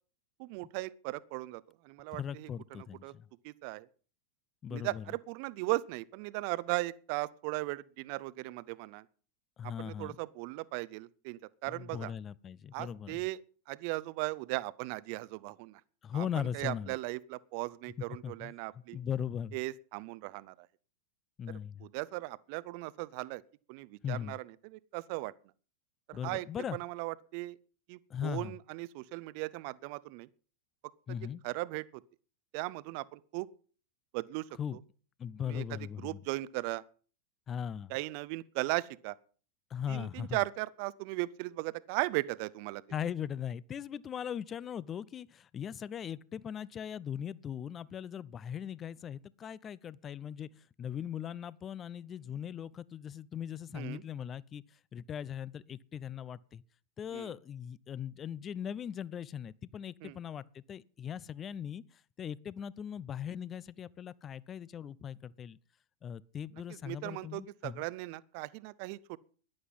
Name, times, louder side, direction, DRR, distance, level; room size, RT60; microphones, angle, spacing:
voice 1, 0.4-3.1 3.4-3.9 4.7-9.0 9.8-12.1 12.7-13.4 13.7-15.8 16.1-19.0 19.5-20.7 21.8-23.4 23.7-25.3 26.1-26.5 26.7-27.6 27.9-30.3 31.1-31.2 31.4-32.0 32.5-33.5 34.1-34.5 35.5-36.8 37.9-39.1 39.9-42.8 53.7-54.0 57.1-57.3 60.0-60.2 66.8-69.2, right 21 dB, 50° right, 0.7 m, -37 dB
voice 2, 2.1-3.3 4.6-5.1 9.6-10.2 11.7-13.2 16.0-17.0 18.2-18.5 18.9-19.6 21.4-21.9 24.0-24.4 26.1-26.8 28.1-28.5 31.1-31.4 34.6-34.8 35.2-36.2 37.5-37.9 39.7-40.4 42.9-50.5 50.8-54.6 54.9-56.6 57.0-61.8 62.2-65.6 66.0-67.9, left 8 dB, 25° left, 0.6 m, -39 dB
14.0 x 11.0 x 5.5 m
figure-of-eight pair, 90°, 0 cm